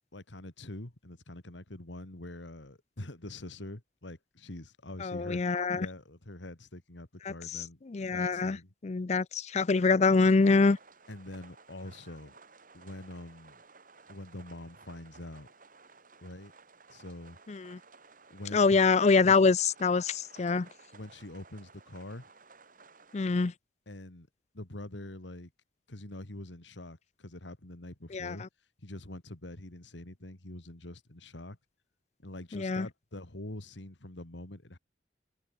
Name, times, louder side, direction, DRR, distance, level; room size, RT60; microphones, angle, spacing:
voice 1, 0.1-8.7 11.1-12.3 12.7-13.6 14.1-15.5 16.2-16.5 16.9-17.4 18.3-18.8 19.2-19.4 20.9-22.3 23.9-24.3 24.5-25.5 25.9-28.5 28.8-31.6 32.2-34.8, left 1 dB, 90° left, 2.5 m, -45 dB
voice 2, 5.0-5.9 7.2-8.6 8.8-10.8 17.5-17.8 18.5-20.7 23.1-23.5 28.1-28.5 32.5-32.9, left 4 dB, 40° left, 0.5 m, -25 dB
sound 1, 10.3-23.5, right 4 dB, 50° right, 7.8 m, -57 dB
head